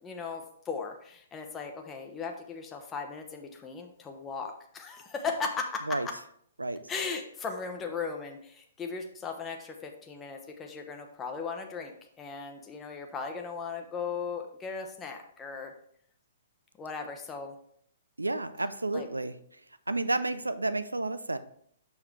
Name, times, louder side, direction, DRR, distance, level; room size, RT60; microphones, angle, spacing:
voice 1, 0.0-6.0 6.9-15.7 16.8-17.6 18.9-19.1, left 5 dB, 15° left, 3 dB, 0.8 m, -37 dB
voice 2, 18.2-19.3 19.9-21.4, right 2 dB, 90° right, 13 dB, 0.5 m, -31 dB
7.0 x 5.9 x 3.2 m, 0.64 s
figure-of-eight pair, 120°, 0 cm